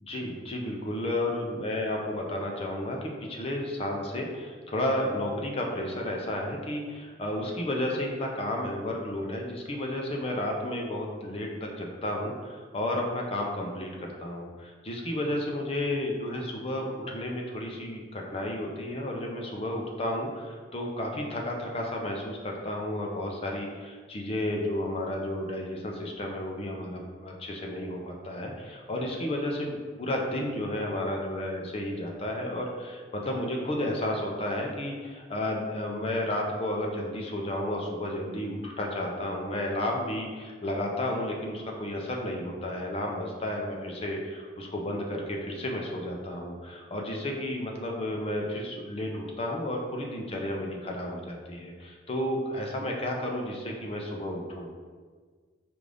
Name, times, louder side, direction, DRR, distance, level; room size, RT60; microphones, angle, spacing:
voice 1, 0.0-54.7, left 1 dB, 30° left, 0 dB, 0.5 m, -32 dB
5.0 x 2.5 x 3.3 m, 1.5 s
head